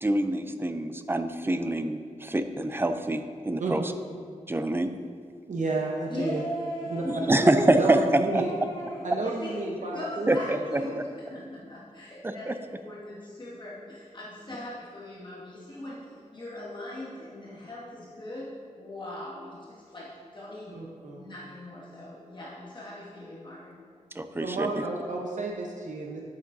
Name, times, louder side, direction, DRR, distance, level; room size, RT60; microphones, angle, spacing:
voice 1, 0.0-3.9 4.5-4.9 7.0-8.5 10.3-11.0 12.2-12.6 24.1-24.7, right 1 dB, 15° right, 9 dB, 0.4 m, -26 dB
voice 2, 5.5-6.4 6.9-7.0 7.7-8.5 9.0-10.7 20.7-21.3 24.4-26.2, right 3 dB, 70° right, -1 dB, 0.8 m, -31 dB
voice 3, 6.1-7.7 8.3-23.8, left 1 dB, 40° left, -8 dB, 1.9 m, -40 dB
9.2 x 8.4 x 2.7 m, 2.1 s
wide cardioid pair, 105°, 13 cm